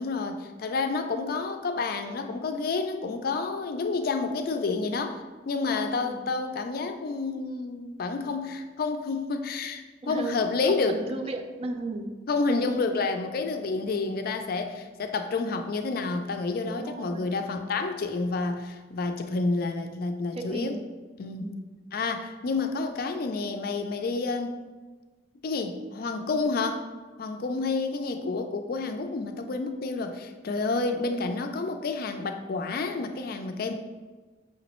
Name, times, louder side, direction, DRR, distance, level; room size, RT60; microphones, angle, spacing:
voice 1, 0.0-11.0 12.3-20.7 21.2-21.5 21.9-24.5 25.4-26.9 27.2-33.7, left 3 dB, 55° left, 7 dB, 0.4 m, -29 dB
voice 2, 10.0-10.3 10.6-12.1 16.6-17.4 20.3-20.9 21.3-21.6, right 2 dB, 30° right, 5 dB, 0.4 m, -35 dB
5.7 x 3.0 x 3.0 m, 1.3 s
head